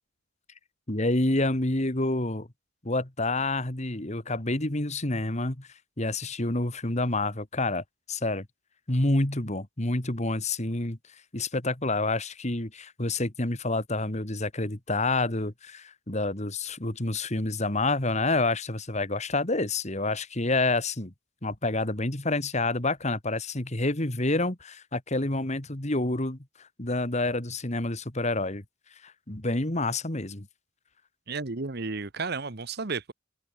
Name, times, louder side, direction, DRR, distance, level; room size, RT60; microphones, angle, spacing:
voice 1, 0.9-2.5 2.8-5.7 6.0-8.5 8.9-11.0 11.3-21.1 21.4-26.4 26.8-28.6 29.0-30.5, left 2 dB, 35° left, 2.2 m, -28 dB
voice 2, 31.3-33.1, right 4 dB, 55° right, 1.2 m, -32 dB
head